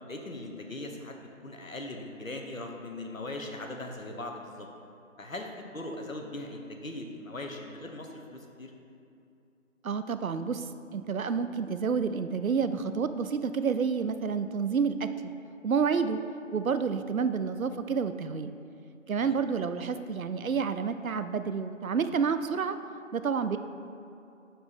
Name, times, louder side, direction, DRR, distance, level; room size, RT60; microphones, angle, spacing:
voice 1, 0.1-4.7 5.2-8.7 19.2-19.4, left 2 dB, 75° left, 2 dB, 1.0 m, -40 dB
voice 2, 9.8-10.6 10.9-15.1 15.6-16.2 16.5-18.5 19.1-22.8 23.1-23.6, right 6 dB, 90° right, 11 dB, 0.5 m, -29 dB
5.9 x 4.3 x 5.2 m, 2.6 s
figure-of-eight pair, 180°, 40 cm